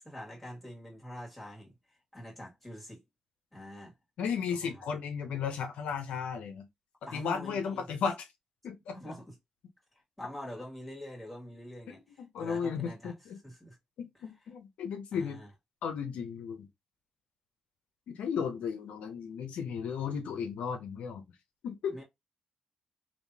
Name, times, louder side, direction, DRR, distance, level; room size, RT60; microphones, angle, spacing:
voice 1, 0.0-3.0 3.5-3.9 4.7-4.9 7.1-7.9 8.9-9.4 9.9-12.0 12.4-13.1 13.4-13.8 15.1-15.5 21.9-22.0, equal, 5° left, 1.9 m, -45 dB
voice 2, 4.2-6.7 7.1-8.3 8.6-8.9 11.9-13.4 14.0-15.4 15.8-16.7 18.1-21.2 21.6-22.0, left 6 dB, 80° left, 0.7 m, -35 dB
3.6 x 2.7 x 2.8 m
cardioid pair, 80°, 2 cm